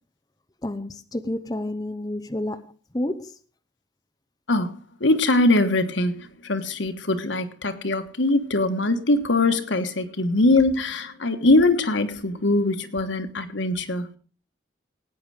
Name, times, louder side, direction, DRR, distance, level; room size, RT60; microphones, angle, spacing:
voice 1, 0.6-3.3, left 1 dB, 20° left, 0.8 m, -30 dB
voice 2, 5.0-14.1, left 2 dB, 85° left, 1.4 m, -22 dB
18.5 x 9.0 x 4.9 m
head